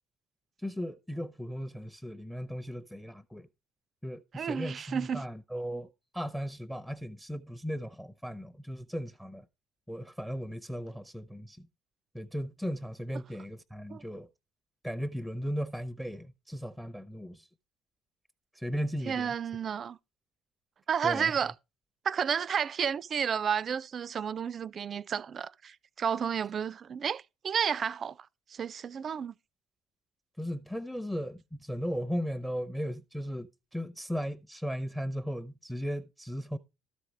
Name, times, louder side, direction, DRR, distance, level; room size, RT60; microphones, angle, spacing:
voice 1, 0.6-3.5 4.0-9.5 9.9-11.7 12.1-14.3 14.8-17.5 18.5-19.3 21.0-21.4 30.4-36.6, equal, ahead, 0.8 m, -36 dB
voice 2, 4.3-5.2 13.9-14.0 19.0-20.0 20.9-21.5 22.0-28.2 28.5-29.3, right 7 dB, 40° right, 0.5 m, -31 dB
13.0 x 5.1 x 4.7 m
figure-of-eight pair, 50°, 0 cm